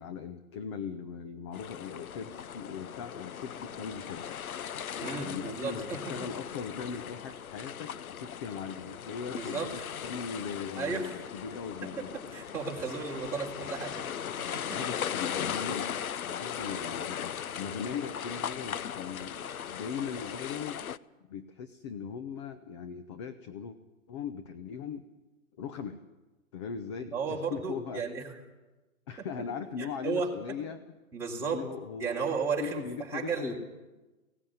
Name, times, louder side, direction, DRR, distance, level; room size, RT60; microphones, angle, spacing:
voice 1, 0.0-4.3 5.2-12.1 14.7-20.8 21.3-23.8 24.1-25.0 25.6-26.0 26.5-28.0 29.1-31.0 31.4-32.3 32.6-33.5, left 6 dB, 20° left, 10 dB, 0.6 m, -39 dB
sound 1, 1.5-21.0, left 8 dB, 80° left, 0.8 m, -38 dB
voice 2, 5.0-6.0 9.3-9.7 10.8-11.1 11.8-14.1 14.5-14.6 27.1-28.2 29.8-30.3 31.1-31.6 32.0-33.5, right 5 dB, 5° right, -4 dB, 3.5 m, -34 dB
17.0 x 17.0 x 9.3 m, 1.2 s
hypercardioid pair, 145°, 42 cm